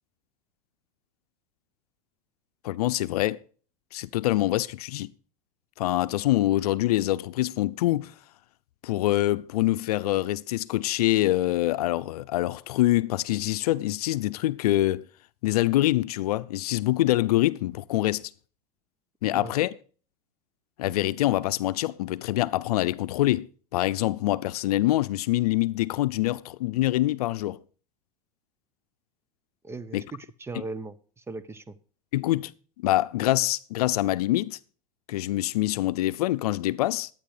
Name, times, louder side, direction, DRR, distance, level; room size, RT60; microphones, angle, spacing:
voice 1, 2.6-3.4 3.9-5.1 5.8-8.1 8.8-15.0 15.4-18.3 19.2-19.7 20.8-27.6 29.9-30.0 32.1-32.5 32.8-34.6 35.1-37.1, left 16 dB, 80° left, 0.6 m, -25 dB
voice 2, 29.6-31.8, right 3 dB, 15° right, 0.7 m, -38 dB
11.5 x 9.1 x 5.0 m
supercardioid pair, 110°, 19 cm